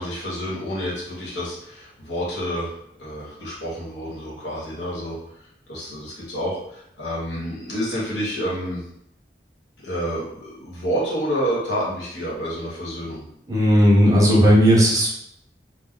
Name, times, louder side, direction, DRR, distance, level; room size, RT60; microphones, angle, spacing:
voice 1, 0.0-5.4 5.7-8.8 9.8-13.2, equal, 85° left, -5 dB, 1.0 m, -29 dB
voice 2, 13.5-15.1, equal, 20° right, -4 dB, 0.6 m, -15 dB
2.2 x 2.1 x 3.6 m, 0.73 s
head